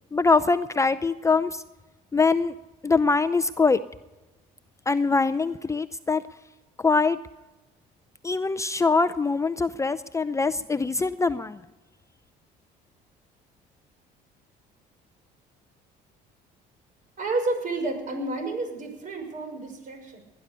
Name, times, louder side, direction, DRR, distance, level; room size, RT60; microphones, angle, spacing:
voice 1, 0.1-1.6 2.1-2.5 2.8-3.8 4.9-6.2 6.8-7.2 8.2-11.6, left 4 dB, 15° left, 13 dB, 0.6 m, -23 dB
voice 2, 17.2-20.2, right 2 dB, 50° right, 4 dB, 6.2 m, -30 dB
19.5 x 11.0 x 6.8 m, 1.1 s
cardioid pair, 100°, 17 cm